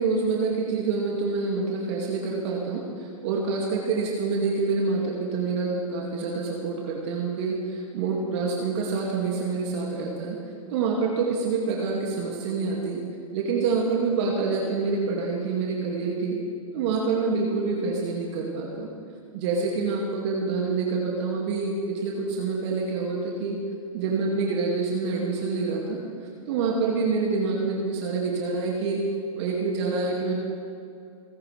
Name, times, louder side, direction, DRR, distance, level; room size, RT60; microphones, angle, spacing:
voice 1, 0.0-10.4 10.7-13.0 13.3-16.4 16.7-18.9 19.3-23.6 23.9-26.0 26.5-29.0 29.4-30.3, right 4 dB, 50° right, -1 dB, 2.3 m, -27 dB
28.5 x 9.7 x 3.4 m, 2.6 s
hypercardioid pair, 125°, 18 cm